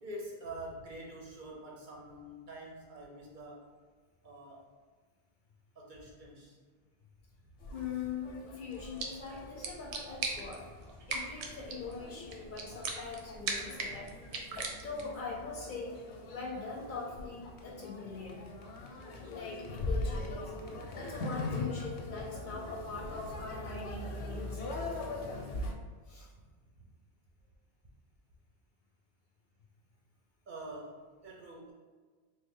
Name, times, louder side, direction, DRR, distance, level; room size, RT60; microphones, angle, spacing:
voice 1, 0.0-3.7 4.2-4.7 5.8-6.6 30.5-31.7, right 1 dB, 55° right, -2 dB, 0.6 m, -46 dB
sound 1, 7.6-25.7, left 2 dB, 90° left, 0.9 m, -41 dB
voice 2, 7.7-10.6 11.1-14.1 14.8-16.0 16.3-18.4 19.2-24.9 26.1-26.3, left 4 dB, 60° left, -2 dB, 0.6 m, -42 dB
sound 2, 8.7-15.2, right 4 dB, 85° right, 0.8 m, -41 dB
3.2 x 2.1 x 3.5 m, 1.5 s
omnidirectional pair, 1.1 m